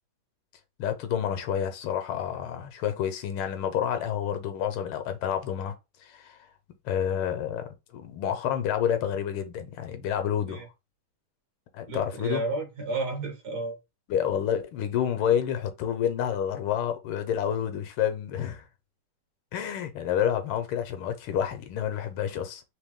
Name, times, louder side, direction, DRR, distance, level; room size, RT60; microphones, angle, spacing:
voice 1, 0.8-6.4 6.8-7.6 7.9-10.7 11.7-12.4 14.1-18.6 19.5-22.6, left 9 dB, 80° left, 1.5 m, -29 dB
voice 2, 11.9-13.8, right 3 dB, 55° right, 1.4 m, -32 dB
3.6 x 2.9 x 3.5 m
omnidirectional pair, 2.3 m